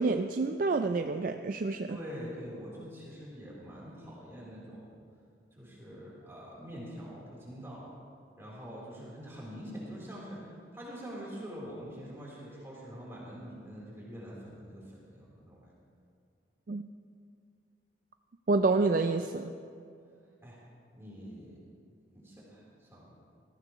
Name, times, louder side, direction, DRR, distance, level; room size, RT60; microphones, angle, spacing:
voice 1, 0.0-2.0 16.7-16.9 18.5-19.5, right 3 dB, 50° right, 7 dB, 0.4 m, -28 dB
voice 2, 1.9-5.0 5.5-7.8 8.4-15.7 20.4-20.6 20.9-21.6 22.1-23.2, equal, 15° right, -7 dB, 3.6 m, -45 dB
18.0 x 14.5 x 3.1 m, 2.4 s
head